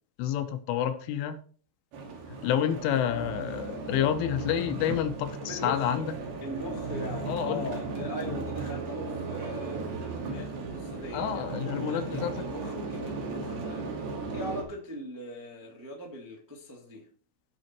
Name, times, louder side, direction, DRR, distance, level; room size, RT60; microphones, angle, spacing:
voice 1, 0.2-1.4 2.4-6.1 7.3-7.7 11.1-12.3, left 10 dB, 85° left, 3.6 m, -29 dB
sound 1, 1.9-14.6, right 3 dB, 60° right, 4.0 m, -36 dB
voice 2, 5.4-6.1 6.4-13.8 14.3-17.1, left 1 dB, 10° right, 0.9 m, -40 dB
16.0 x 5.7 x 4.5 m
omnidirectional pair, 5.5 m